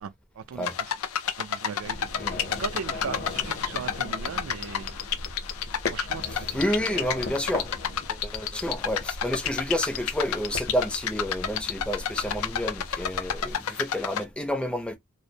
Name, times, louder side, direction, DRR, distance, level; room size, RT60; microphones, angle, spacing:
voice 1, 0.0-0.7 1.4-2.1 2.6-5.0 5.9-7.0, right 7 dB, 85° right, 0.4 m, -38 dB
sound 1, 0.6-14.2, left 8 dB, 90° left, 0.4 m, -31 dB
sound 2, 1.8-13.5, left 2 dB, 45° left, 0.7 m, -39 dB
voice 2, 6.3-7.8 8.1-15.0, equal, 5° left, 0.4 m, -30 dB
2.4 x 2.0 x 2.6 m
head